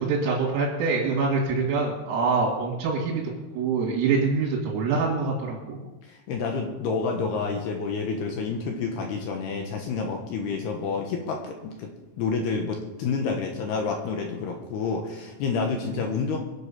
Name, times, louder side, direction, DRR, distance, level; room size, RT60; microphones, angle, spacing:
voice 1, 0.0-3.2 3.5-5.9, right 4 dB, 85° right, -4 dB, 5.0 m, -25 dB
voice 2, 6.1-11.9 12.2-16.4, left 4 dB, 70° left, 2 dB, 2.9 m, -29 dB
23.5 x 8.0 x 5.6 m, 1.1 s
omnidirectional pair, 5.7 m